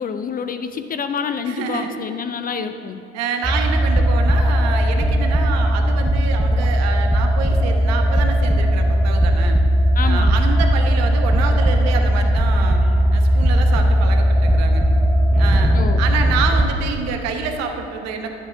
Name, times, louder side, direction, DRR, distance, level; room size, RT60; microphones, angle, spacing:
voice 1, 0.0-3.0 10.0-10.4 15.7-16.0, left 6 dB, 30° left, 9 dB, 0.4 m, -27 dB
voice 2, 1.5-1.9 3.1-9.6 10.0-12.8 13.1-14.9 15.4-18.3, right 6 dB, 55° right, 4 dB, 1.1 m, -27 dB
sound 1, 3.4-16.7, equal, ahead, 0.7 m, -17 dB
11.5 x 7.6 x 3.5 m, 2.7 s
figure-of-eight pair, 60°, 32 cm